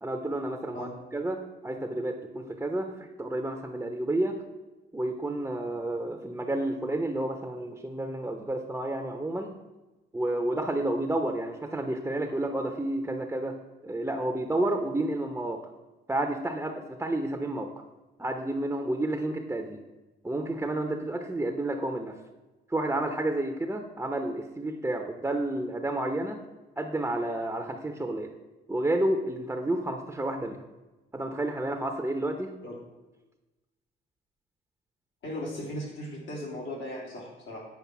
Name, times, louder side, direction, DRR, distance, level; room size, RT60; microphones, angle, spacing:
voice 1, 0.0-4.4 4.9-9.5 10.1-13.6 13.8-15.7 16.1-17.7 18.2-19.8 20.2-22.2 22.7-26.4 26.8-28.3 28.7-30.6 31.1-32.5, right 1 dB, 10° right, 4 dB, 0.8 m, -30 dB
voice 2, 35.2-37.7, left 1 dB, 80° left, -4 dB, 3.4 m, -37 dB
8.5 x 5.0 x 6.1 m, 1.1 s
cardioid pair, 90°, 20 cm